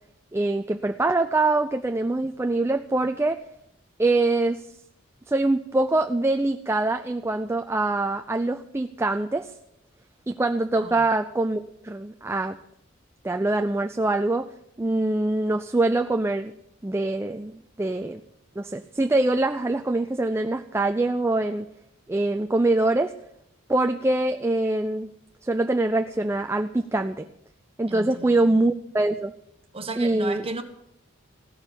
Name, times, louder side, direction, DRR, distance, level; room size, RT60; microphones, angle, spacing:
voice 1, 0.3-3.4 4.0-4.6 5.3-9.5 10.3-12.6 13.2-14.5 14.8-16.5 16.8-18.2 18.6-21.7 22.1-23.1 23.7-25.1 25.4-27.3 27.8-29.3 30.0-30.5, right 2 dB, 15° right, 6 dB, 0.4 m, -24 dB
voice 2, 27.9-28.6 29.7-30.6, right 3 dB, 30° right, 5 dB, 1.4 m, -35 dB
15.5 x 6.7 x 9.8 m, 0.78 s
head